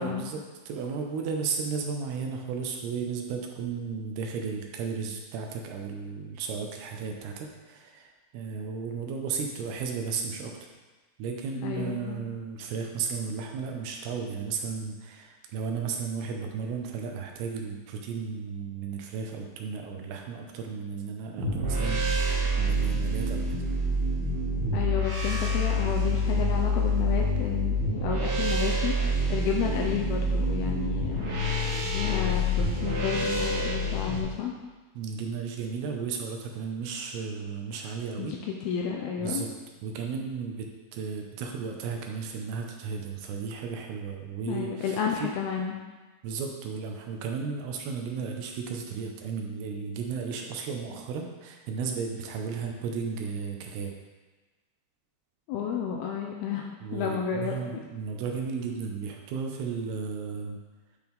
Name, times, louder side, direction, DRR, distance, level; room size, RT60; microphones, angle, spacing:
voice 1, 0.0-10.5 11.2-23.6 35.0-38.3 39.2-39.5 39.8-45.3 46.2-53.9 56.8-60.6, right 5 dB, 80° right, 2 dB, 2.6 m, -34 dB
voice 2, 11.6-12.2 24.7-31.3 31.9-34.5 38.2-39.4 44.5-45.8 55.5-57.5, left 7 dB, 80° left, 0 dB, 2.4 m, -31 dB
sound 1, 21.4-34.2, equal, 60° right, 2.4 m, -27 dB
10.0 x 4.6 x 3.5 m, 1.3 s
omnidirectional pair, 4.7 m